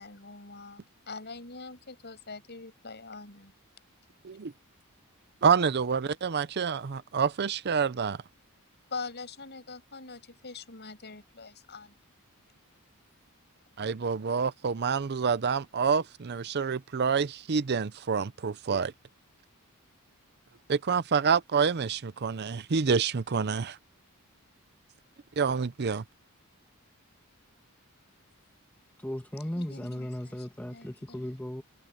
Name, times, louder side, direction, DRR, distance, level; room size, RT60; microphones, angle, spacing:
voice 1, 0.0-3.5 8.9-12.0 29.6-31.3, left 4 dB, 50° left, 7.0 m, -43 dB
voice 2, 5.4-8.2 13.8-18.9 20.7-23.8 25.4-26.0, right 6 dB, 50° right, 0.6 m, -27 dB
voice 3, 29.0-31.6, equal, 5° left, 1.3 m, -36 dB
head